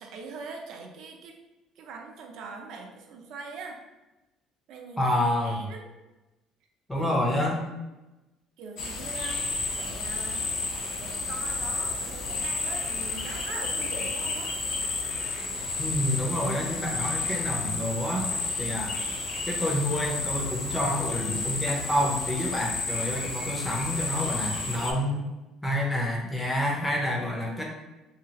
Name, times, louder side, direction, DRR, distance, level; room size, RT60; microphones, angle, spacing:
voice 1, 0.0-1.4 1.8-3.8 4.7-5.1 5.4-5.9 6.9-7.4 8.6-9.5 9.8-10.5 11.0-14.6, right 4 dB, 65° right, 2 dB, 0.4 m, -42 dB
voice 2, 5.0-5.6 6.9-7.6 15.8-18.3 18.6-18.9 19.5-25.2 25.6-27.6, left 1 dB, 10° left, -1 dB, 0.5 m, -28 dB
sound 1, 8.8-24.9, left 3 dB, 60° left, 0.5 m, -31 dB
2.7 x 2.4 x 2.8 m, 1.0 s
cardioid pair, 150°, 0 cm